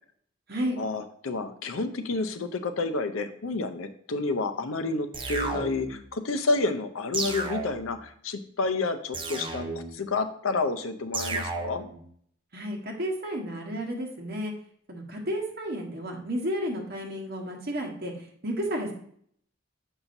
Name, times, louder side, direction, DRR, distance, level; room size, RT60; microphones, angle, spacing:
voice 1, 0.8-9.7 9.9-11.8, left 3 dB, 85° left, 9 dB, 0.6 m, -29 dB
sound 1, 5.1-6.0 7.1-8.0 9.1-10.0 11.1-12.0, right 3 dB, 25° right, 0.7 m, -33 dB
voice 2, 12.5-14.5 14.9-18.1 18.4-18.9, equal, 50° right, 1 dB, 1.3 m, -32 dB
7.0 x 5.6 x 2.6 m, 0.63 s
head